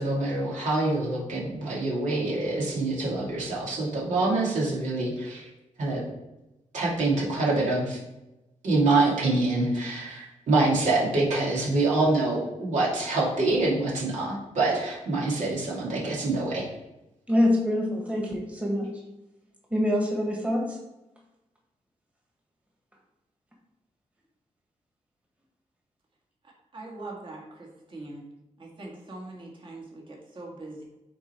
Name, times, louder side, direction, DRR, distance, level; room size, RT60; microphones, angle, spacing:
voice 1, 0.0-5.5 5.8-6.0 6.7-8.0 8.6-16.6, right 2 dB, 80° right, -5 dB, 2.5 m, -25 dB
voice 2, 17.3-18.9 19.7-20.8, left 1 dB, 10° right, -1 dB, 1.5 m, -25 dB
voice 3, 26.7-28.2 28.6-30.8, right 2 dB, 40° right, -2 dB, 1.9 m, -42 dB
9.0 x 4.1 x 4.4 m, 0.96 s
wide cardioid pair, 110°, 12 cm